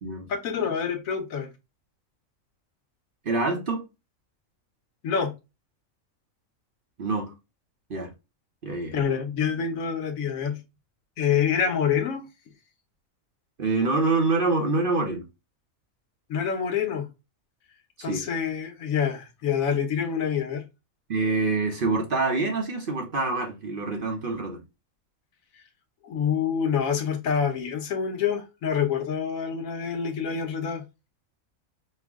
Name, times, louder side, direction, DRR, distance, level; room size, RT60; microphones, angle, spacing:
voice 1, 0.3-1.5 5.0-5.3 8.9-10.6 11.2-12.2 16.3-17.1 18.0-20.6 26.0-30.8, left 7 dB, 80° left, 1.3 m, -26 dB
voice 2, 3.2-3.8 7.0-7.3 7.9-8.1 8.6-8.9 13.6-15.3 18.0-18.3 21.1-24.6, right 3 dB, 50° right, 0.8 m, -26 dB
5.5 x 2.1 x 3.5 m
omnidirectional pair, 1.4 m